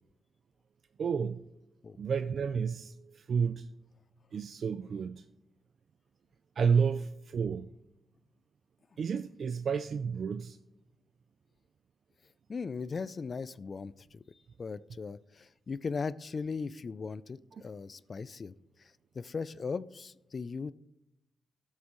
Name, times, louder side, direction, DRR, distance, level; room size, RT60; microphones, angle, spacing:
voice 1, 1.0-1.5 2.0-3.7 4.3-5.2 6.6-7.7 9.0-10.6, right 6 dB, 60° right, 0.4 m, -31 dB
voice 2, 12.5-14.2 14.6-18.5 19.1-20.7, left 5 dB, 40° left, 0.4 m, -38 dB
16.5 x 7.5 x 3.1 m
cardioid pair, 100°, 0 cm